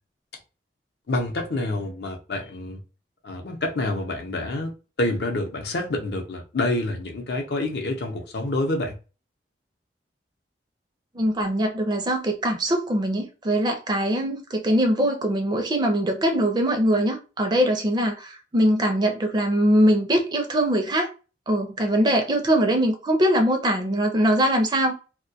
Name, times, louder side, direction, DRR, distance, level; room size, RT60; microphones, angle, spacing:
voice 1, 1.1-2.8 3.2-9.0, left 2 dB, 65° left, 0.6 m, -27 dB
voice 2, 11.2-21.1 21.5-24.9, equal, 25° right, 0.4 m, -22 dB
2.2 x 2.2 x 2.6 m
head